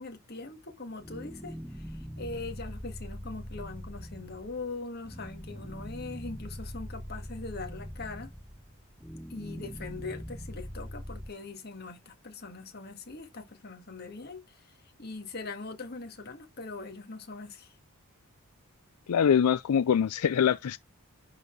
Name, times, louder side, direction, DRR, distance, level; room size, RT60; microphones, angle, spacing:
voice 1, 0.0-8.3 9.3-17.8, left 3 dB, 45° left, 2.0 m, -41 dB
sound 1, 1.0-11.3, equal, ahead, 0.7 m, -42 dB
voice 2, 19.1-20.8, left 8 dB, 90° left, 0.4 m, -24 dB
10.5 x 4.2 x 4.5 m
head